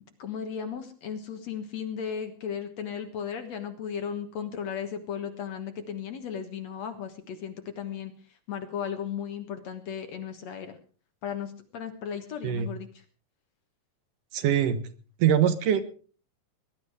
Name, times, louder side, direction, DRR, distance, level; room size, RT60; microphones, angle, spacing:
voice 1, 0.2-8.1 8.5-10.8 11.2-13.0, left 7 dB, 60° left, 7 dB, 2.3 m, -35 dB
voice 2, 14.3-14.8 15.2-15.8, right 9 dB, 70° right, 11 dB, 2.6 m, -23 dB
20.0 x 11.5 x 4.8 m, 0.40 s
omnidirectional pair, 4.1 m